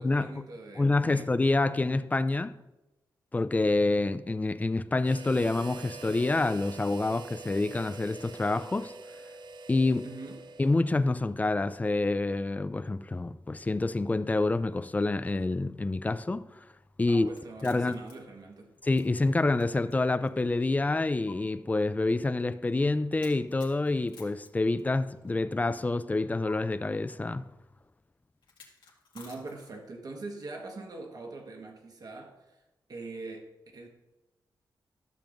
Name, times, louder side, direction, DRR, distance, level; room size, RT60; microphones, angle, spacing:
voice 1, 0.0-1.3 10.0-10.4 17.1-18.7 29.1-32.6 32.9-33.5 33.7-33.9, right 3 dB, 55° right, 1.4 m, -43 dB
voice 2, 0.8-2.5 3.3-8.9 9.7-10.1 10.6-16.5 17.0-17.3 17.6-18.0 18.8-27.4, left 2 dB, 20° left, 0.4 m, -27 dB
Harmonica, 5.0-11.0, right 4 dB, 75° right, 0.5 m, -45 dB
sound 1, 17.3-19.9 20.3-20.4 21.3-21.4 23.2-25.3 26.5-26.6 28.4-29.9, left 4 dB, 85° left, 1.8 m, -54 dB
13.0 x 6.9 x 2.6 m
cardioid pair, 90°, 8 cm